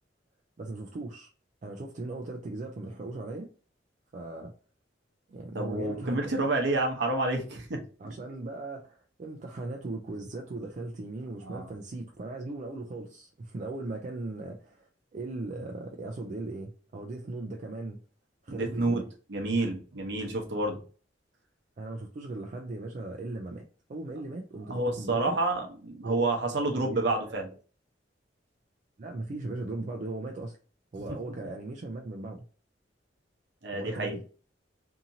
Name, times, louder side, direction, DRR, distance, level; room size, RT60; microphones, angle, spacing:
voice 1, 0.6-1.3 1.6-3.5 4.1-4.5 5.3-6.4 8.0-18.0 18.4-19.1 21.8-25.4 26.0-26.3 26.7-27.5 29.0-30.6 30.9-32.5 33.7-34.2, right 2 dB, 40° right, 0.4 m, -38 dB
voice 2, 5.5-8.1 11.4-11.7 18.5-19.0 19.3-20.8 24.7-27.5 31.1-31.2 33.6-34.2, right 2 dB, 65° right, 0.8 m, -29 dB
2.8 x 2.5 x 2.6 m
head